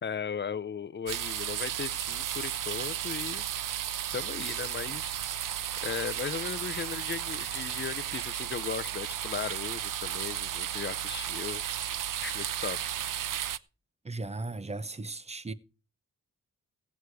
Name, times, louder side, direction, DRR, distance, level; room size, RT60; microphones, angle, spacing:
voice 1, 0.0-3.5 4.1-5.2 5.8-11.6 12.2-12.9, left 6 dB, 35° left, 0.5 m, -37 dB
sound 1, 1.1-13.6, right 10 dB, 70° right, 0.6 m, -34 dB
voice 2, 14.0-15.5, right 2 dB, 20° right, 0.7 m, -36 dB
16.5 x 8.3 x 4.7 m
wide cardioid pair, 165°, 33 cm